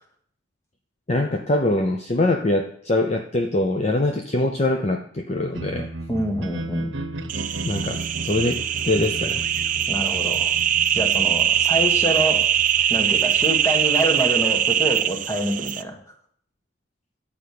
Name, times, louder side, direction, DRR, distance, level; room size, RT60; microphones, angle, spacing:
voice 1, 1.1-5.9 7.6-9.4, left 2 dB, 35° left, 4 dB, 0.7 m, -23 dB
sound 1, 5.5-15.6, right 2 dB, 75° right, 0.9 m, -36 dB
voice 2, 6.1-6.9 9.9-10.6 10.9-12.5 12.9-16.1, right 1 dB, 15° left, 3 dB, 1.7 m, -26 dB
sound 2, 7.3-15.8, right 10 dB, 45° right, 0.5 m, -22 dB
11.0 x 5.2 x 8.5 m, 0.62 s
head